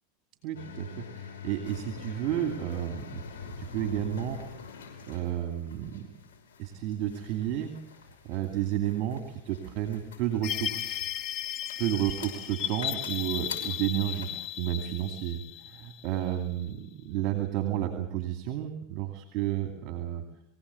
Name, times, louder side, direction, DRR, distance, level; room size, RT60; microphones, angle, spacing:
voice 1, 0.4-3.2 3.6-4.4 5.1-6.1 6.6-7.7 8.2-11.0 11.5-20.2, right 12 dB, 50° right, 6 dB, 2.6 m, -32 dB
sound 1, 0.5-14.4, left 6 dB, 85° left, 5.9 m, -45 dB
sound 2, 10.4-16.7, left 12 dB, 50° left, 0.9 m, -35 dB
23.5 x 16.5 x 8.5 m, 0.71 s
supercardioid pair, 115°, 0 cm